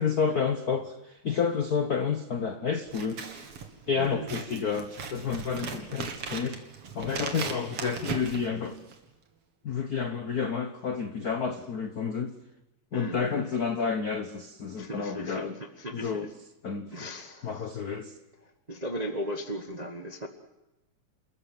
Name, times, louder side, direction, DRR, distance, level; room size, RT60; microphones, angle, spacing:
voice 1, 0.0-3.2 3.9-6.6 6.9-8.8 9.6-12.4 12.9-15.6 15.9-16.3 16.6-17.1 17.4-18.1, left 6 dB, 80° left, 8 dB, 0.8 m, -30 dB
Scissors, 2.8-9.1, right 5 dB, 55° right, 2.9 m, -38 dB
voice 2, 3.9-4.3 12.9-13.5 14.8-16.3 16.9-17.7 18.4-20.3, equal, 70° right, 6 dB, 0.4 m, -37 dB
28.5 x 14.0 x 7.6 m, 0.99 s
omnidirectional pair, 3.4 m